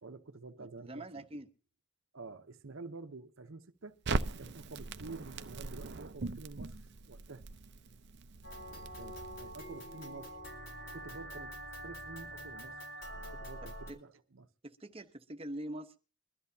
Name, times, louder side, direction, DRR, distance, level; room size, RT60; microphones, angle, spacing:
voice 1, 0.0-1.4 2.1-4.0 4.4-6.8 7.1-7.4 8.7-10.4 10.9-11.6 11.8-12.8 13.1-14.5, right 3 dB, 75° right, 0.9 m, -49 dB
voice 2, 0.8-1.5 13.9-14.0 14.6-16.0, right 1 dB, 30° right, 1.0 m, -43 dB
Crackle, 4.0-10.2, right 3 dB, 55° right, 0.6 m, -40 dB
sound 1, 8.4-13.9, right 1 dB, 60° left, 3.9 m, -45 dB
23.0 x 13.0 x 2.8 m
head